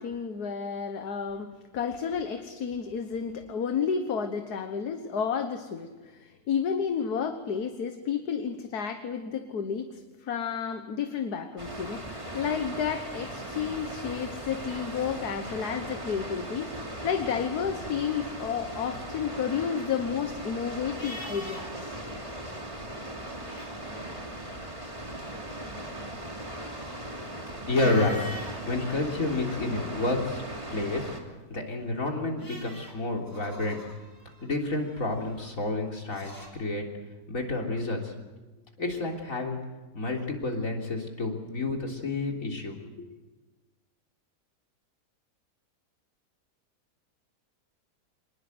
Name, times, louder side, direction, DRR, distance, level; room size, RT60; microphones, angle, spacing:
voice 1, 0.0-21.9 27.8-28.1 28.9-29.0, left 7 dB, 65° left, 7 dB, 1.8 m, -31 dB
Water, 11.6-31.2, right 1 dB, 20° right, 2.9 m, -38 dB
sound 1, 19.9-22.0 22.2-22.4 23.2-24.1 24.7-28.6 29.1-30.1 31.6-36.5, equal, 10° left, 4.1 m, -46 dB
voice 2, 27.7-28.2 28.7-30.4 30.7-31.1 31.5-33.8 34.4-36.8 37.3-38.1 38.8-39.6 39.9-43.1, left 2 dB, 50° left, 1 dB, 3.8 m, -29 dB
25.5 x 20.5 x 8.0 m, 1.2 s
omnidirectional pair, 1.8 m